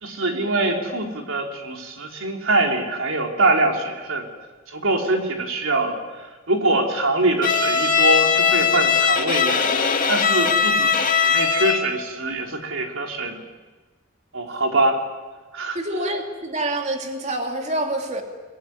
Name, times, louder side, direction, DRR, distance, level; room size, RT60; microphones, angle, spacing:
voice 1, 0.0-4.3 4.7-9.7 10.1-13.4 14.3-15.0 15.5-15.8, right 2 dB, 85° right, 3 dB, 3.8 m, -23 dB
Bowed string instrument, 7.4-12.0, left 6 dB, 45° left, 2.0 m, -20 dB
voice 2, 15.7-18.2, right 1 dB, 35° right, 3 dB, 2.7 m, -26 dB
22.0 x 21.5 x 9.6 m, 1.3 s
head